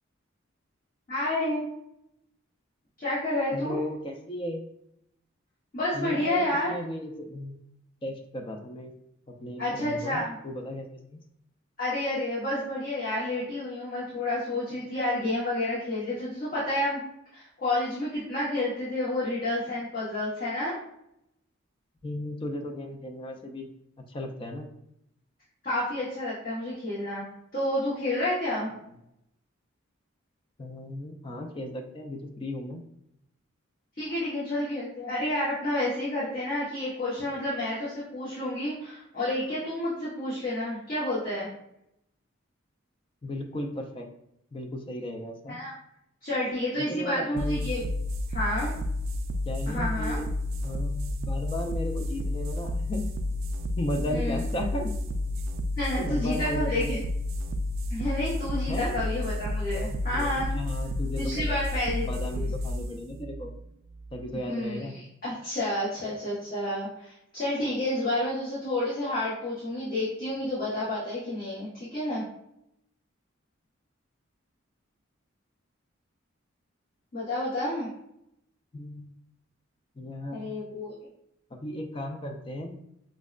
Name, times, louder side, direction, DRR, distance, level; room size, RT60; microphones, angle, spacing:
voice 1, 1.1-1.7 3.0-3.8 5.7-6.8 9.6-10.3 11.8-17.0 17.3-20.7 25.6-27.2 27.5-28.7 34.0-41.5 45.5-45.7 46.2-47.8 48.3-48.7 49.7-50.2 54.1-54.4 55.8-57.0 57.9-60.5 61.2-62.0 62.3-62.5 64.5-64.9 65.2-72.2 77.1-77.9 80.3-80.9, left 1 dB, 45° left, -10 dB, 1.0 m, -30 dB
voice 2, 3.5-4.7 5.9-7.6 8.0-8.9 9.3-11.2 22.0-23.7 24.0-24.7 30.6-32.8 43.2-44.1 44.5-45.6 46.7-47.7 49.5-50.3 50.6-53.1 53.8-55.0 56.0-57.0 58.7-59.0 59.7-61.6 62.0-63.5 64.1-64.9 78.7-79.1 80.0-80.5 81.5-82.8, left 1 dB, 25° left, 2 dB, 0.4 m, -35 dB
sound 1, 47.4-64.4, left 1 dB, 70° right, 0.3 m, -31 dB
5.2 x 2.1 x 2.4 m, 0.78 s
head